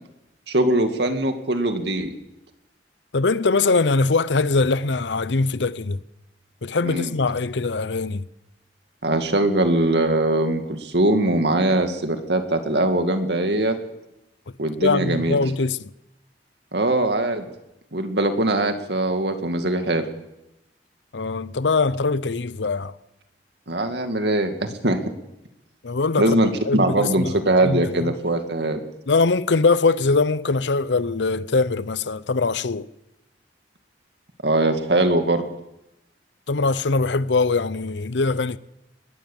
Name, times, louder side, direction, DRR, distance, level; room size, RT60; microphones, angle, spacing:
voice 1, 0.5-2.1 6.8-7.1 9.0-13.8 14.6-15.4 16.7-17.5 17.9-20.0 23.7-25.0 26.2-28.8 34.4-35.4, right 1 dB, 70° right, 2.2 m, -21 dB
voice 2, 3.1-6.0 6.6-8.3 14.8-15.8 21.1-22.9 25.8-26.4 26.6-28.1 29.1-32.9 36.5-38.6, left 3 dB, 80° left, 0.7 m, -22 dB
21.0 x 17.0 x 7.3 m
head